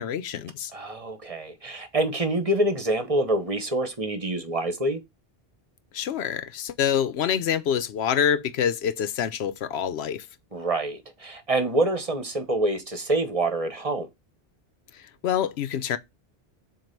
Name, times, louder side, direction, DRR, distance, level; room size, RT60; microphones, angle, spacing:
voice 1, 0.0-0.7 5.9-10.3 14.9-16.0, left 8 dB, 90° left, 0.9 m, -26 dB
voice 2, 0.7-5.0 10.5-14.1, right 1 dB, 35° right, 1.0 m, -26 dB
7.5 x 2.5 x 5.2 m
omnidirectional pair, 1.0 m